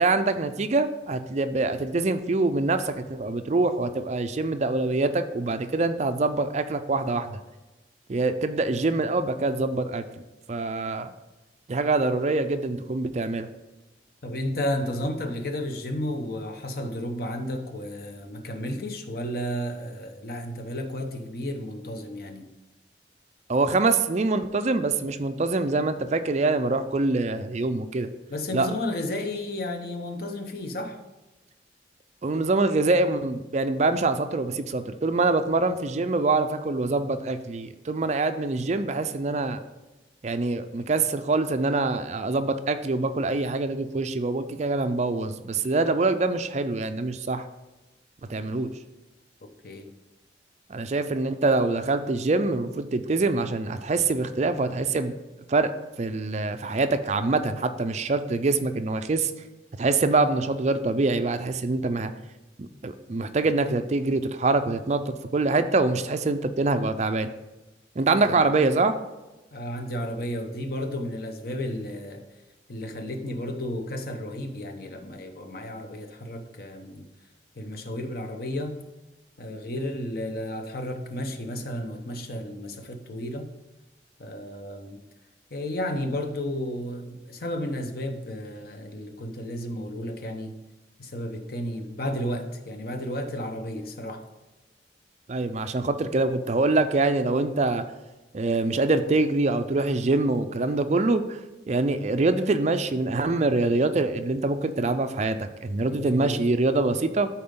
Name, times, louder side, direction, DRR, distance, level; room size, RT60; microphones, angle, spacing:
voice 1, 0.0-7.4 8.1-10.0 10.5-11.1 11.7-13.5 23.5-28.1 28.5-28.7 32.2-39.6 40.2-47.4 48.3-48.7 50.7-55.1 55.5-55.7 56.0-59.3 59.8-62.1 62.6-67.3 68.0-68.9 95.3-97.8 98.3-101.4 101.7-107.3, right 3 dB, 40° right, 0.4 m, -25 dB
voice 2, 14.2-22.5 28.3-31.0 49.6-50.0 68.2-68.3 69.5-72.3 72.7-77.1 77.6-78.8 79.4-83.5 84.2-85.0 85.5-90.6 91.0-94.2 105.9-106.4, left 1 dB, 55° left, 0.9 m, -32 dB
13.0 x 4.3 x 3.8 m
head